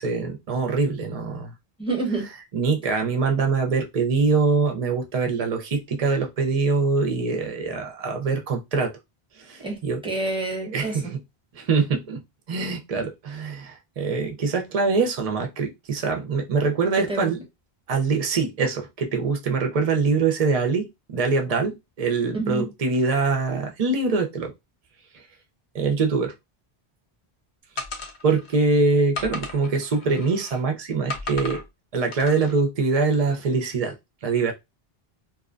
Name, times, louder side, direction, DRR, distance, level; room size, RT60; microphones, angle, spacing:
voice 1, 0.0-1.5 2.5-8.9 9.4-10.0 10.7-11.2 11.5-12.2 12.5-17.4 17.9-24.5 25.7-26.3 28.2-31.6 31.9-34.0 34.2-34.5, right 4 dB, 50° right, 0.5 m, -24 dB
voice 2, 1.8-2.3 9.6-11.1 17.1-17.3 22.3-22.7, right 2 dB, 5° right, 0.8 m, -28 dB
sound 1, 27.8-28.6 29.1-30.6 31.1-31.7 32.1-32.5, left 3 dB, 55° left, 0.6 m, -35 dB
2.7 x 2.1 x 2.4 m
omnidirectional pair, 1.1 m